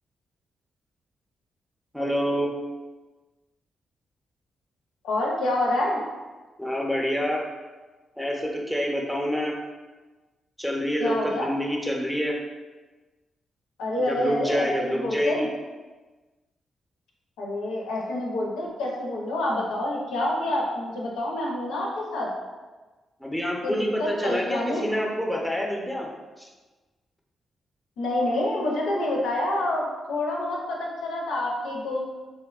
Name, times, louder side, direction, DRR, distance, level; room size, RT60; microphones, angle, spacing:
voice 1, 1.9-2.5 6.6-7.4 8.2-9.5 10.6-12.3 14.0-15.5 23.2-26.1 26.4-26.5, equal, ahead, -1 dB, 0.6 m, -27 dB
voice 2, 5.0-6.0 11.0-11.5 13.8-15.5 17.4-22.3 23.6-24.9 28.0-32.0, left 1 dB, 85° left, -3 dB, 0.4 m, -27 dB
2.8 x 2.1 x 2.3 m, 1.2 s
supercardioid pair, 45°, 0 cm